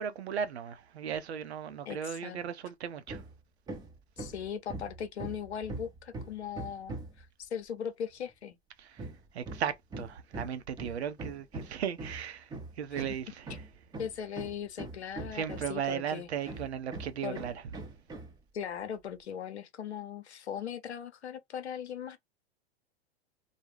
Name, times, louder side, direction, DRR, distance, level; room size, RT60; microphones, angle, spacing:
voice 1, 0.0-3.2 8.8-9.1 9.3-13.7 15.3-17.6, right 8 dB, 80° right, 0.6 m, -36 dB
voice 2, 1.9-2.4 4.2-8.6 12.9-13.0 14.0-16.3 17.2-17.4 18.5-22.2, left 8 dB, 85° left, 0.7 m, -39 dB
Hammer, 3.1-3.4 3.7-7.2 9.0-15.9 16.5-18.4, right 2 dB, 10° right, 0.6 m, -42 dB
2.4 x 2.1 x 3.2 m
hypercardioid pair, 105°, 32 cm